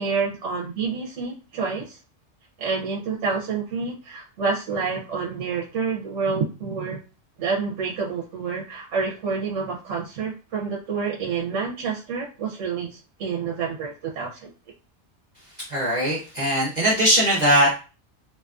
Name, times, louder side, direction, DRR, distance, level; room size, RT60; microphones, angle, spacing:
voice 1, 0.0-2.0 2.6-7.0 7.4-14.5, right 5 dB, 70° right, -2 dB, 0.9 m, -28 dB
voice 2, 15.7-17.8, equal, 45° right, -4 dB, 0.6 m, -20 dB
2.7 x 2.4 x 2.3 m, 0.33 s
omnidirectional pair, 1.3 m